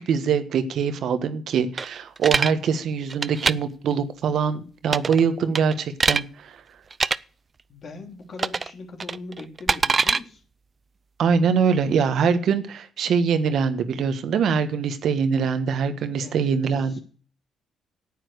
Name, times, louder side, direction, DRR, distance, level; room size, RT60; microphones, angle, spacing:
voice 1, 0.0-6.6 11.2-17.0, right 6 dB, 70° right, 10 dB, 1.3 m, -23 dB
sound 1, 1.8-2.5 3.1-3.5 4.9-5.2 5.5-6.2 6.9-7.2 8.4-8.7 9.0-10.2, right 4 dB, 40° right, 0.5 m, -23 dB
voice 2, 7.7-10.4 16.2-16.5 16.9-17.0, left 3 dB, 55° left, 4 dB, 3.1 m, -40 dB
9.7 x 8.9 x 6.4 m, 0.41 s
supercardioid pair, 70°, 0 cm